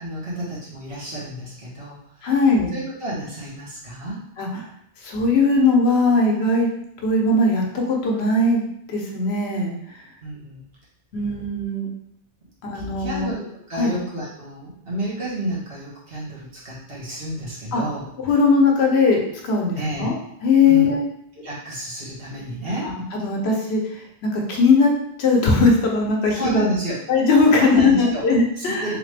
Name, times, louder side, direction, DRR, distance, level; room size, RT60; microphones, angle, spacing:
voice 1, 0.0-2.3 2.7-4.2 10.2-10.6 12.7-18.1 19.8-20.1 20.6-20.9 21.4-22.9 26.2-27.0 27.5-28.2 28.6-29.0, right 1 dB, 65° right, -8 dB, 1.6 m, -30 dB
voice 2, 2.2-2.7 4.4-4.6 5.0-6.7 7.0-8.6 8.9-9.7 11.1-11.9 12.6-13.3 13.8-14.0 17.7-17.8 18.2-20.1 20.4-21.1 23.1-24.9 25.2-26.7 27.1-28.9, left 3 dB, 80° left, 1 dB, 1.0 m, -19 dB
3.7 x 2.9 x 3.2 m, 0.75 s
omnidirectional pair, 1.1 m